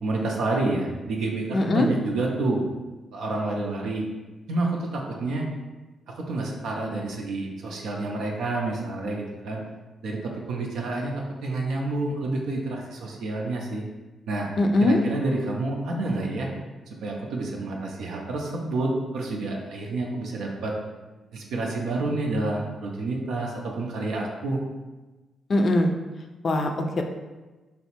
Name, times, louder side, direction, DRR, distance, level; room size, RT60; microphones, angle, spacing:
voice 1, 0.0-2.6 3.1-4.1 4.5-5.5 6.1-9.6 10.0-13.8 14.3-14.5 14.8-16.5 17.0-20.7 21.3-24.6, right 2 dB, 75° right, -1 dB, 0.4 m, -29 dB
voice 2, 1.5-1.9 14.6-15.0 25.5-25.9 26.4-27.0, left 2 dB, 55° left, 4 dB, 0.4 m, -21 dB
3.3 x 2.0 x 2.9 m, 1.2 s
hypercardioid pair, 45°, 0 cm